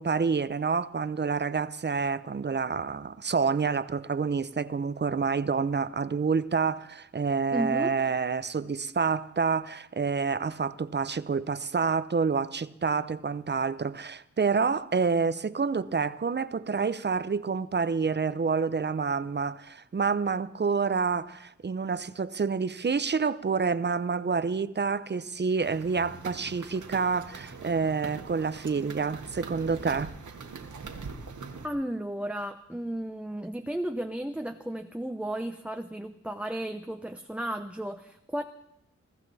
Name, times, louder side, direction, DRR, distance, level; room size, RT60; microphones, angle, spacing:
voice 1, 0.0-30.1, right 5 dB, 35° right, 0.7 m, -28 dB
voice 2, 7.5-8.0 31.6-38.4, right 1 dB, 5° right, 0.7 m, -34 dB
sound 1, 25.6-31.7, right 4 dB, 85° right, 1.8 m, -42 dB
22.5 x 14.5 x 4.1 m
wide cardioid pair, 90°, 29 cm